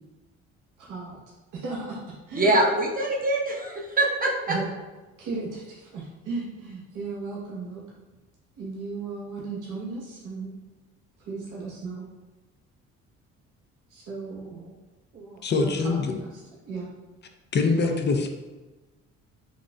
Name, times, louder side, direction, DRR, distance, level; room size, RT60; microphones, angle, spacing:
voice 1, 0.8-1.2 1.5-2.6 4.5-4.7 5.2-7.8 8.6-10.5 11.2-12.1 13.9-14.7 15.1-16.4 16.6-16.9 17.8-18.0, right 3 dB, 60° right, -5 dB, 0.9 m, -35 dB
voice 2, 2.4-4.6, right 1 dB, 25° right, -1 dB, 0.7 m, -24 dB
voice 3, 15.4-16.2 17.5-18.3, left 4 dB, 30° left, 5 dB, 0.4 m, -24 dB
4.0 x 2.4 x 2.2 m, 1.2 s
supercardioid pair, 60°, 34 cm